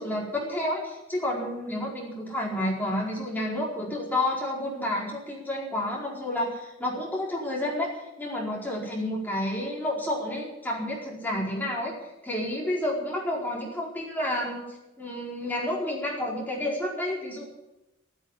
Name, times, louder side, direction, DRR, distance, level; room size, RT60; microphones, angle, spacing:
voice 1, 0.0-11.9 12.2-17.5, left 1 dB, 10° left, -3 dB, 4.7 m, -30 dB
16.0 x 8.3 x 9.9 m, 0.93 s
head